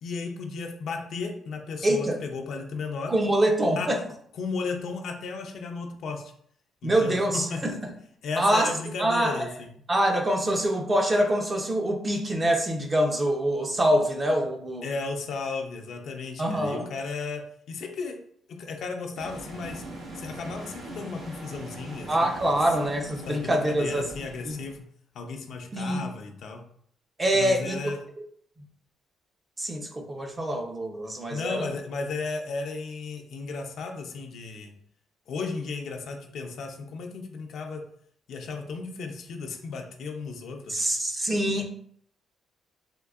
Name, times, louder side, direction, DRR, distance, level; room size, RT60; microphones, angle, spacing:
voice 1, 0.0-3.1 3.8-3.9 4.3-6.3 6.8-7.2 7.5-7.6 8.2-9.7 14.8-17.4 17.7-18.2 18.5-19.8 20.1-22.6 23.2-24.8 25.1-26.6 27.3-28.0 31.3-34.7 35.3-37.8 38.3-40.9, left 4 dB, 70° left, 3 dB, 0.6 m, -34 dB
voice 2, 1.8-2.2 3.1-4.0 6.8-7.7 8.4-8.7 9.0-9.4 9.9-14.9 16.4-16.9 22.1-24.1 24.5-24.6 25.7-26.0 27.2-27.8 29.6-31.7 40.7-41.6, right 1 dB, 25° right, 2 dB, 0.6 m, -25 dB
sound 1, 19.1-24.8, right 1 dB, 75° right, 1.0 m, -42 dB
3.6 x 2.6 x 2.4 m, 0.62 s
cardioid pair, 90°, 0 cm